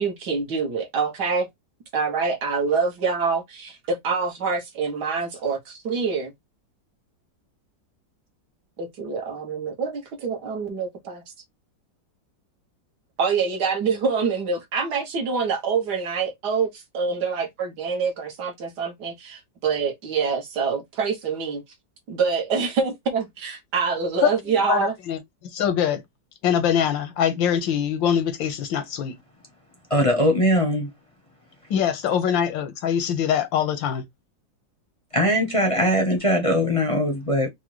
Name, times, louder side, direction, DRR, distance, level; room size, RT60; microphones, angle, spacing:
voice 1, 0.0-1.5 1.9-6.3 8.8-11.2 13.2-21.6 22.1-24.9, right 5 dB, 65° right, 1.6 m, -26 dB
voice 2, 24.7-25.2 25.5-26.0 26.4-29.1 31.7-34.0, left 8 dB, 85° left, 1.6 m, -23 dB
voice 3, 29.9-30.9 35.1-37.5, equal, 30° left, 0.6 m, -21 dB
4.8 x 2.2 x 3.1 m
omnidirectional pair, 2.0 m